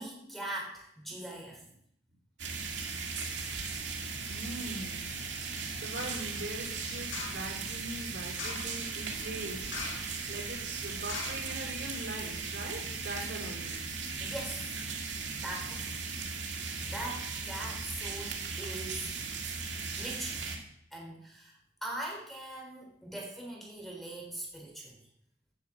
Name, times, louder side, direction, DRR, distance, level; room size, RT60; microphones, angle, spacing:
voice 1, 0.0-1.6 14.2-14.8 15.4-15.9 16.8-19.1 19.9-20.5 20.9-25.0, right 1 dB, ahead, -1 dB, 3.2 m, -41 dB
sound 1, 2.4-20.6, right 4 dB, 85° right, 2.1 m, -38 dB
voice 2, 4.2-5.1 5.8-9.7 10.3-13.8 19.8-19.9, right 2 dB, 65° right, -1 dB, 3.5 m, -41 dB
sound 2, 6.0-6.3 7.1-7.5 8.3-8.8 9.7-10.2 10.4-10.5 11.1-11.9 12.4-12.5, left 4 dB, 85° left, 2.5 m, -41 dB
9.3 x 7.0 x 7.7 m, 0.70 s
head